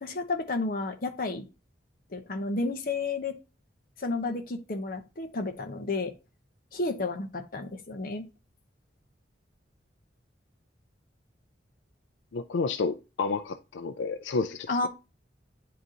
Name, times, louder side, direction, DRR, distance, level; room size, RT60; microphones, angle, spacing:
voice 1, 0.0-1.5 2.1-3.4 4.0-6.1 6.7-8.3 14.7-14.9, left 3 dB, 50° left, 0.8 m, -31 dB
voice 2, 12.3-14.9, left 4 dB, 80° left, 0.4 m, -30 dB
9.4 x 3.8 x 2.8 m
head